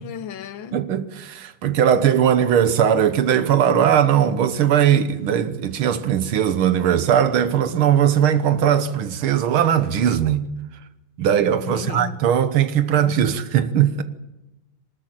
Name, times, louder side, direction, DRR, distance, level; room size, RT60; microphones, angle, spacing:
voice 1, 0.0-0.8 11.6-12.2, left 9 dB, 70° left, 1.6 m, -34 dB
voice 2, 0.7-10.4 11.2-14.0, right 9 dB, 80° right, 2.0 m, -19 dB
23.5 x 13.0 x 8.9 m
omnidirectional pair, 2.3 m